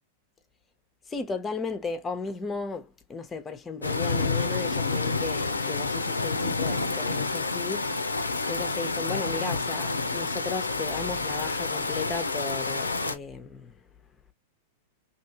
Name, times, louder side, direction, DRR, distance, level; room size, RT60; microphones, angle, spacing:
voice 1, 1.1-13.7, left 4 dB, 20° left, 0.8 m, -35 dB
sound 1, 3.8-13.2, left 3 dB, 90° left, 0.5 m, -29 dB
2.8 x 2.6 x 2.8 m
hypercardioid pair, 95°, 0 cm